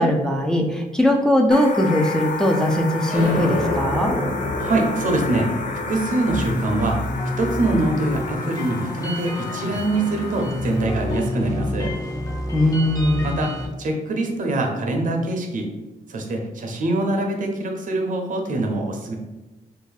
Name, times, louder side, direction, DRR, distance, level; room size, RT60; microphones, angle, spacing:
voice 1, 0.0-4.2 12.5-13.3, left 1 dB, 5° left, 1 dB, 0.4 m, -20 dB
sound 1, 1.5-11.2, left 4 dB, 60° left, 0.5 m, -32 dB
sound 2, 3.1-10.4, left 2 dB, 80° left, 1.0 m, -30 dB
voice 2, 4.6-5.5 5.9-7.0 7.4-11.9 13.2-15.7 16.1-19.1, right 2 dB, 60° right, 2 dB, 0.7 m, -24 dB
sound 3, 6.3-13.6, left 1 dB, 20° left, 0.8 m, -29 dB
2.6 x 2.6 x 3.9 m, 1.1 s
cardioid pair, 80°, 15 cm